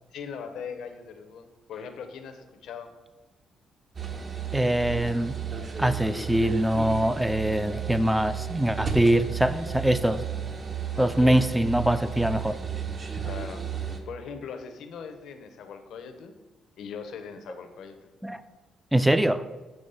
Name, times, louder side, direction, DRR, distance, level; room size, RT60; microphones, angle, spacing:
voice 1, 0.1-2.9 11.0-11.4 13.2-13.7 14.1-16.3 16.8-18.1, left 6 dB, 75° left, 7 dB, 0.7 m, -40 dB
sound 1, 4.0-14.0, right 7 dB, 40° right, 0.8 m, -33 dB
voice 2, 4.5-5.4 5.8-10.2 11.0-12.6 18.2-18.4 18.9-19.4, right 1 dB, 5° right, 12 dB, 0.4 m, -23 dB
6.9 x 3.1 x 5.5 m, 1.2 s
cardioid pair, 90°, 0 cm